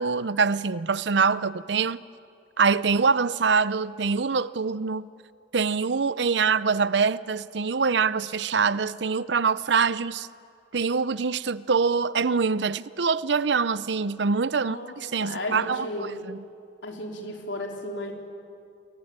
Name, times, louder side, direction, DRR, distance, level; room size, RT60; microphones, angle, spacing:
voice 1, 0.0-2.0 2.6-5.0 5.5-10.3 10.7-15.9 16.2-16.4, right 5 dB, 70° right, 0.6 m, -24 dB
voice 2, 14.6-15.0 15.2-16.2 16.8-18.1, left 1 dB, 80° left, 3.7 m, -34 dB
29.0 x 22.0 x 8.8 m
head